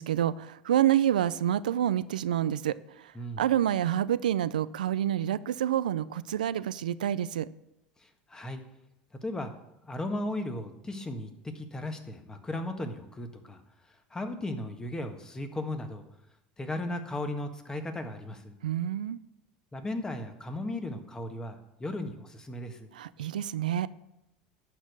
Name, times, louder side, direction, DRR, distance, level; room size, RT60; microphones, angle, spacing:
voice 1, 0.0-7.5 18.6-19.2 22.9-23.9, right 11 dB, 90° right, 17 dB, 0.4 m, -28 dB
voice 2, 8.0-8.6 9.2-9.5 9.8-13.6 14.1-16.0 16.6-18.5 19.7-22.9, left 1 dB, 15° left, 6 dB, 1.6 m, -36 dB
12.0 x 4.4 x 8.2 m, 0.88 s
hypercardioid pair, 90°, 4 cm